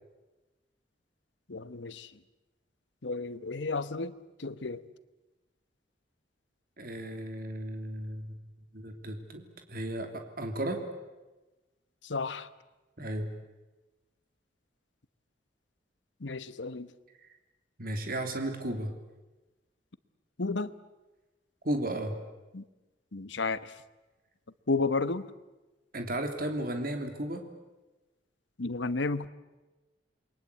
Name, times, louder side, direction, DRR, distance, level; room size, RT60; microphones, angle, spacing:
voice 1, 1.5-2.1 3.0-4.1 4.4-4.8 12.0-12.5 16.2-16.9 20.4-20.7 22.5-22.6 23.1-23.8 24.7-25.3 28.6-29.3, left 3 dB, 85° left, 14 dB, 1.1 m, -32 dB
voice 2, 6.8-8.4 8.7-9.4 9.7-10.8 13.0-13.3 17.8-18.9 21.6-22.1 25.9-27.4, right 1 dB, 55° right, 5 dB, 3.0 m, -34 dB
28.5 x 22.5 x 8.4 m, 1.1 s
head